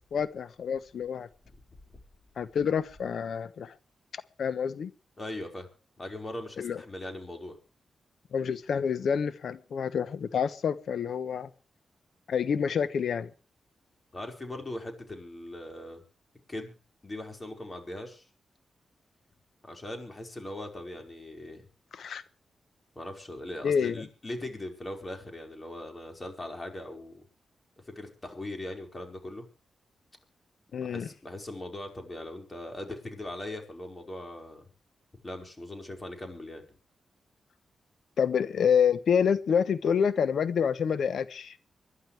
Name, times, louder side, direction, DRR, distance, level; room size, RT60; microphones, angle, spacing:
voice 1, 0.1-1.3 2.4-3.7 4.1-4.9 6.6-6.8 8.3-11.5 12.3-13.3 21.9-22.2 23.6-24.0 30.7-31.1 38.2-41.6, left 7 dB, 75° left, 1.0 m, -28 dB
voice 2, 5.2-5.7 6.0-7.6 14.1-16.0 16.5-16.8 17.0-18.3 19.6-21.6 23.0-27.2 27.9-29.5 30.8-34.7 35.2-36.6, left 1 dB, 30° left, 5.3 m, -40 dB
25.5 x 11.5 x 3.5 m
cardioid pair, 55°, 0 cm